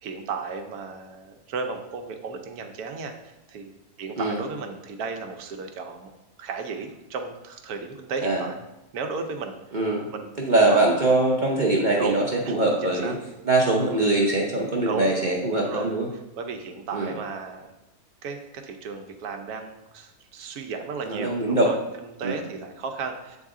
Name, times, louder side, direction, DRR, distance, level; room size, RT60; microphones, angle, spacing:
voice 1, 0.0-3.7 4.0-6.1 6.4-8.6 8.9-9.5 10.1-10.3 10.6-10.8 12.0-12.2 12.4-12.6 12.8-13.1 14.8-15.1 15.6-15.9 16.4-17.7 18.2-21.8 22.2-23.4, right 4 dB, 85° right, 5 dB, 1.2 m, -34 dB
voice 2, 9.7-10.1 10.4-13.2 13.4-16.1 16.9-17.1 21.1-21.7 22.2-22.4, right 2 dB, 45° right, -2 dB, 0.7 m, -22 dB
8.0 x 4.0 x 3.6 m, 0.96 s
omnidirectional pair, 1.6 m